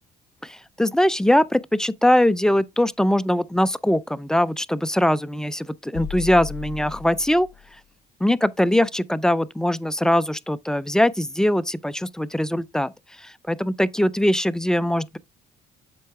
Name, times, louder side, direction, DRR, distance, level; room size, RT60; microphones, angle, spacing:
voice 1, 0.4-7.5 8.2-12.9 13.2-15.2, left 1 dB, 5° left, 0.3 m, -21 dB
sound 1, 5.9-7.8, left 10 dB, 70° left, 0.5 m, -36 dB
7.6 x 4.5 x 3.4 m
cardioid pair, 110°, 17 cm